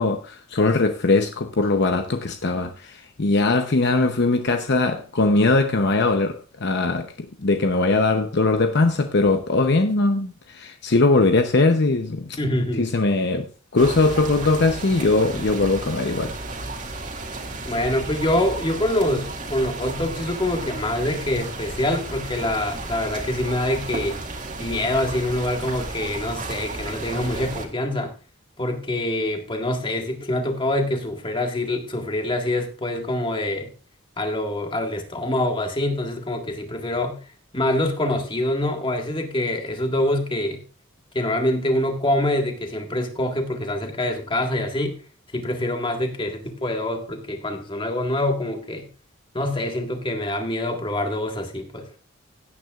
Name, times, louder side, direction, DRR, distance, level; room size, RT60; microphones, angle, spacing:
voice 1, 0.0-12.4 12.8-13.5 13.7-16.3, left 3 dB, 55° left, 0.8 m, -20 dB
voice 2, 12.4-12.9 17.6-24.2 24.6-28.1 28.6-33.7 34.2-40.6 41.1-45.0 45.3-48.9 49.3-51.9, left 1 dB, 25° left, 1.8 m, -25 dB
sound 1, 13.8-27.7, right 2 dB, 40° right, 2.1 m, -33 dB
16.5 x 9.3 x 2.4 m
head